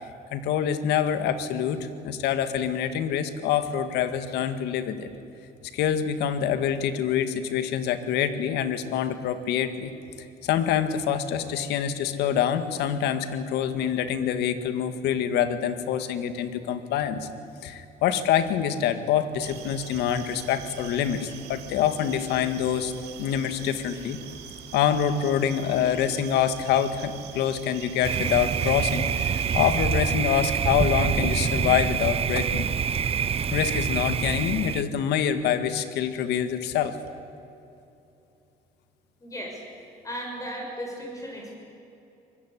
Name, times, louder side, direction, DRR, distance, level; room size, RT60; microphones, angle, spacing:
voice 1, 0.3-5.1 5.7-17.3 17.6-22.9 23.2-24.2 24.7-32.7 33.5-37.0, left 9 dB, 85° left, 10 dB, 1.9 m, -26 dB
sound 1, 19.4-29.9, right 9 dB, 80° right, 2.6 m, -44 dB
Thunder, 28.0-34.8, right 7 dB, 35° right, 0.7 m, -26 dB
voice 2, 39.2-39.6 40.0-41.5, equal, 20° left, 0 dB, 6.5 m, -35 dB
24.5 x 21.0 x 10.0 m, 2.8 s
cardioid pair, 110°, 17 cm